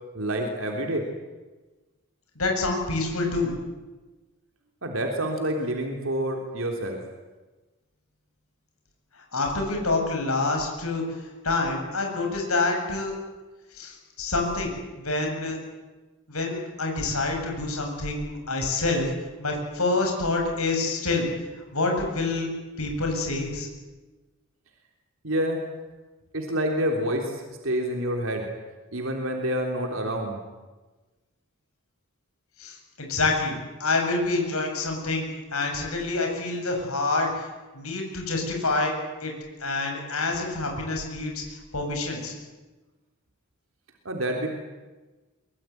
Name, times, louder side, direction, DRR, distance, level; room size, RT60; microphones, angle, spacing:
voice 1, 0.1-1.1 4.8-7.0 25.2-25.6 26.3-28.5 28.9-30.4 44.1-44.5, right 1 dB, 65° right, 2 dB, 3.6 m, -28 dB
voice 2, 2.4-3.5 9.3-11.0 11.4-13.1 13.7-14.7 15.0-15.6 16.3-19.1 19.4-21.3 21.7-22.5 22.8-23.7 32.6-33.5 33.8-35.2 35.5-37.5 37.7-38.9 39.2-39.3 39.6-42.3, left 3 dB, 80° left, 2 dB, 7.9 m, -27 dB
24.5 x 23.0 x 9.4 m, 1.2 s
head